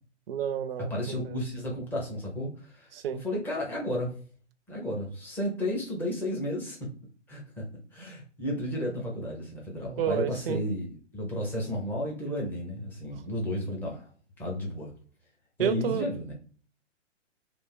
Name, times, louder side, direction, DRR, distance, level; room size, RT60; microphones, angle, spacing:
voice 1, 0.3-0.9 1.2-1.4 2.9-3.2 10.0-10.6 15.6-16.1, right 8 dB, 50° right, 0.5 m, -30 dB
voice 2, 0.9-2.9 3.2-4.2 4.7-6.9 7.3-7.6 7.9-14.1 14.4-14.9 15.6-16.3, left 1 dB, 5° left, 0.6 m, -33 dB
3.4 x 2.4 x 3.6 m
hypercardioid pair, 140°, 37 cm